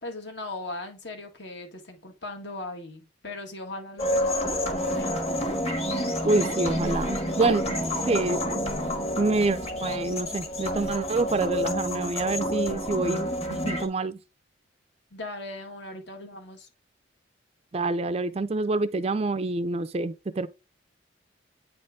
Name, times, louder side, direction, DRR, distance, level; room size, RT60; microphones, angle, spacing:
voice 1, 0.0-5.2 15.1-16.7, left 2 dB, 60° left, 1.7 m, -39 dB
sound 1, 4.0-13.9, equal, 30° left, 1.6 m, -29 dB
voice 2, 6.2-7.8 8.1-8.4 9.2-14.2 17.7-20.5, right 3 dB, 30° right, 0.4 m, -27 dB
9.1 x 4.3 x 3.6 m
head